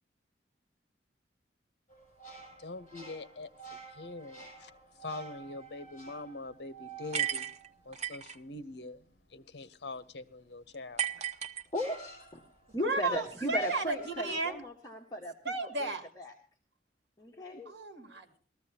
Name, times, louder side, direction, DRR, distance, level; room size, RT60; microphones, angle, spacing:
sound 1, 1.9-8.5 10.8-10.9 11.7-12.9 13.5-14.7, right 4 dB, 45° left, 7.5 m, -50 dB
voice 1, 2.6-7.5 7.8-11.1, left 2 dB, 65° left, 14 dB, 0.8 m, -44 dB
sound 2, 7.1-8.4 11.0-12.1, right 9 dB, 40° right, 0.8 m, -34 dB
voice 2, 11.7-12.4 12.7-15.5 15.8-15.9 16.2-16.3 17.2-17.7, equal, 20° left, -1 dB, 1.3 m, -36 dB
voice 3, 12.8-14.6 15.4-16.1 17.7-18.4, right 3 dB, 70° right, 5 dB, 2.3 m, -34 dB
20.0 x 14.0 x 2.8 m, 0.42 s
head